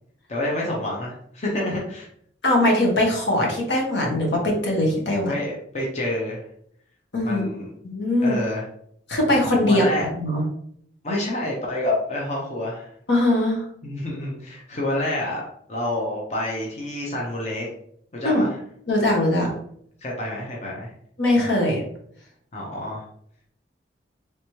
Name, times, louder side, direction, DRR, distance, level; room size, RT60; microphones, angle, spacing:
voice 1, 0.3-2.1 5.2-6.4 7.2-7.7 8.2-8.6 9.7-10.1 11.0-12.9 13.8-15.4 15.7-17.7 18.1-18.6 20.0-20.9 22.5-23.0, left 1 dB, 35° left, -3 dB, 0.7 m, -28 dB
voice 2, 2.4-5.3 7.1-7.4 7.8-8.4 9.1-9.8 10.2-10.4 13.1-13.6 18.2-18.4 18.9-19.5 21.2-21.8, left 1 dB, 75° left, -1 dB, 1.1 m, -21 dB
3.3 x 3.0 x 3.0 m, 0.67 s
head